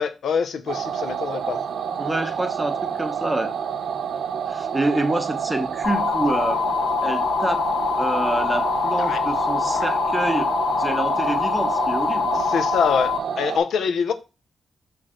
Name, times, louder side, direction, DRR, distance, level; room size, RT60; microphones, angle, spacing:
voice 1, 0.0-1.6 9.0-9.2 9.7-9.9 12.3-14.1, left 6 dB, 75° left, 0.8 m, -25 dB
sound 1, 0.7-13.6, right 7 dB, 75° right, 0.7 m, -28 dB
voice 2, 2.0-3.5 4.5-6.6 7.0-7.7 8.0-10.5 10.8-12.3, right 1 dB, 10° right, 0.8 m, -27 dB
sound 2, 5.8-13.2, left 7 dB, 45° left, 0.7 m, -24 dB
6.3 x 4.7 x 4.3 m
wide cardioid pair, 170°, 0 cm